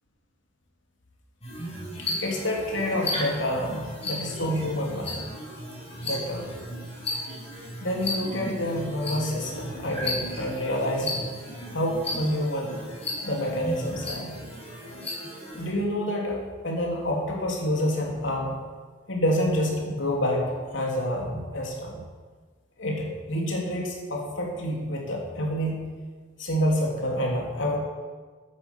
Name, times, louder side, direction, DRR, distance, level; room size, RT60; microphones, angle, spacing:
sound 1, 1.4-15.7, left 1 dB, 30° left, 5.9 m, -35 dB
voice 1, 1.9-5.1 6.0-6.5 7.8-11.2 11.7-12.9 13.2-14.3 15.5-16.4 16.6-18.6 19.1-22.0 22.8-25.9 26.4-27.8, equal, 70° left, -1 dB, 3.3 m, -28 dB
15.0 x 10.5 x 7.3 m, 1.5 s
head